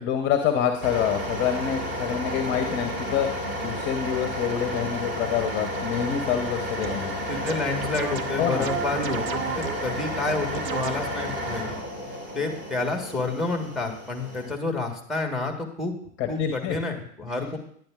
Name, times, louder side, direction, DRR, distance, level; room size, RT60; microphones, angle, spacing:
voice 1, 0.0-7.1 8.4-8.7 16.2-16.8, left 8 dB, 30° left, 5 dB, 0.9 m, -27 dB
sound 1, 0.8-14.5, equal, 25° right, 3.7 m, -32 dB
sound 2, 6.8-7.1 7.5-10.0 10.5-11.3, right 8 dB, 85° right, 0.7 m, -33 dB
voice 2, 7.3-11.7 12.3-16.0 16.3-17.6, left 3 dB, ahead, 3 dB, 1.3 m, -29 dB
10.5 x 10.5 x 2.4 m, 0.64 s
hypercardioid pair, 110°, 41 cm